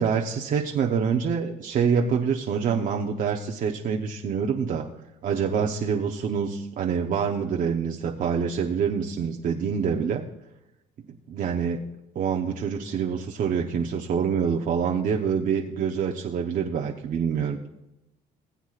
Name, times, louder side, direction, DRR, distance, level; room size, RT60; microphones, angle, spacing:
voice 1, 0.0-4.8 5.2-10.2 11.3-11.8 12.1-17.6, right 6 dB, 55° right, 1 dB, 0.9 m, -26 dB
20.0 x 8.1 x 2.5 m, 0.93 s
cardioid pair, 110°, 17 cm